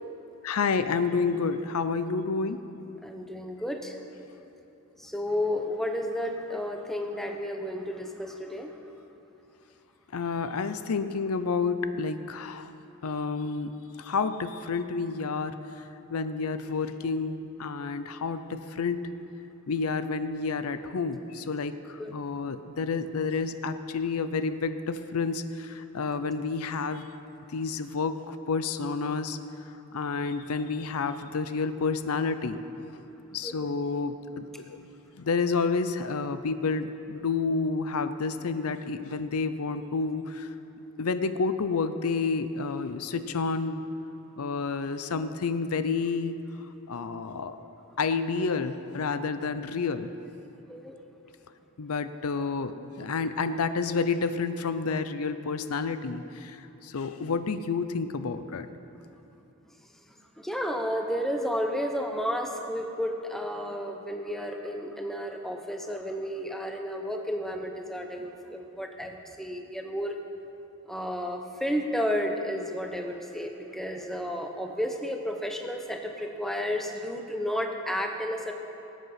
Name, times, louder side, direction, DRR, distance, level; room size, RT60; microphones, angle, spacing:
voice 1, 0.4-2.6 10.1-12.7 13.0-13.7 14.0-15.6 16.1-19.0 19.7-27.1 27.5-29.4 29.9-32.6 33.3-34.8 35.2-40.5 41.0-43.8 44.4-46.4 46.9-47.6 48.0-50.1 51.8-56.6 56.8-58.7, left 4 dB, 75° left, 11 dB, 0.6 m, -29 dB
voice 2, 3.0-4.0 5.0-8.7 22.0-22.1 33.4-33.7 50.7-51.0 60.4-70.1 70.9-78.5, equal, ahead, 3 dB, 0.8 m, -32 dB
19.0 x 8.2 x 5.8 m, 2.9 s
head